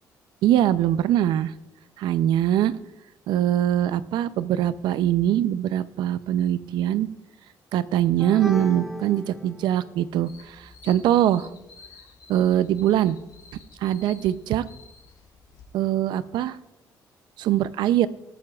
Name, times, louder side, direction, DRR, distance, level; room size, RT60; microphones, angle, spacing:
voice 1, 0.4-1.5 2.0-2.7 3.3-7.1 7.7-11.5 12.3-13.2 13.8-14.6 15.7-16.6 17.4-18.1, right 11 dB, 85° right, 15 dB, 0.6 m, -22 dB
sound 1, 8.2-10.0, equal, ahead, 1.6 m, -36 dB
sound 2, 10.3-15.6, left 6 dB, 75° left, 3.1 m, -50 dB
20.5 x 13.0 x 2.4 m, 0.93 s
cardioid pair, 110°, 7 cm